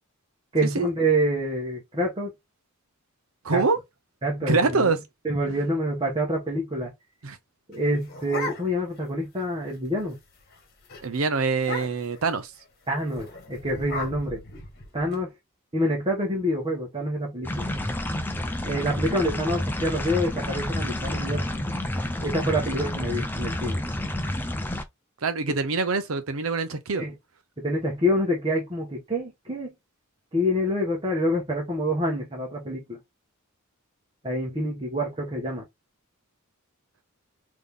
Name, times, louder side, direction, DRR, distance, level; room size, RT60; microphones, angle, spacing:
voice 1, 0.5-2.3 3.5-3.6 4.2-4.9 5.2-6.9 7.7-10.2 12.9-14.4 14.9-15.3 15.7-17.6 18.6-21.5 22.2-23.8 25.5-25.6 26.9-27.1 27.6-29.7 30.3-33.0 34.2-35.7, equal, 25° right, 1.2 m, -27 dB
voice 2, 3.4-3.8 4.5-5.0 7.2-7.4 11.0-12.5 25.2-27.1, right 4 dB, 70° right, 0.7 m, -24 dB
sound 1, 7.7-9.0 9.4-9.5 9.7-10.1 10.4-10.6 10.9-11.0 11.6-12.2 13.1-15.1, left 2 dB, 45° left, 1.5 m, -36 dB
sound 2, 17.4-24.8, left 1 dB, 10° left, 0.5 m, -29 dB
3.8 x 3.0 x 3.4 m
head